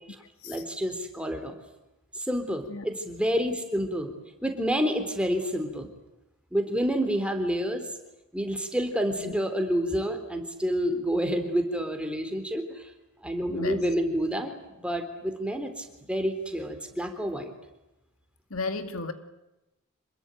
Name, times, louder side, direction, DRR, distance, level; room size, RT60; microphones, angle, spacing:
voice 1, 0.4-1.6 2.1-4.1 4.4-5.9 6.5-7.9 8.3-12.9 13.2-17.5, equal, 5° right, 5 dB, 3.7 m, -29 dB
voice 2, 13.5-13.8 18.5-19.1, left 3 dB, 70° left, 9 dB, 2.1 m, -33 dB
27.0 x 21.5 x 9.2 m, 0.95 s
head